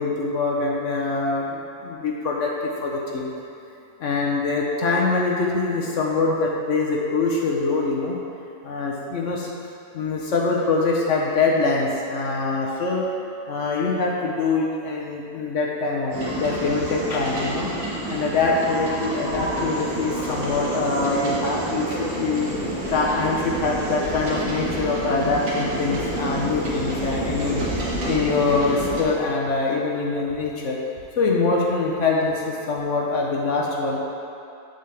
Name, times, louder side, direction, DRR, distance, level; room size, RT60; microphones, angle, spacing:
voice 1, 0.0-3.3 4.0-8.2 8.6-9.5 9.9-13.0 13.5-17.7 18.1-22.5 22.9-27.6 28.0-30.8 31.2-34.0, left 3 dB, 60° left, -2 dB, 1.0 m, -24 dB
sound 1, 16.1-29.0, right 1 dB, 70° right, 1.8 m, -28 dB
7.4 x 7.0 x 3.3 m, 2.6 s
omnidirectional pair, 1.7 m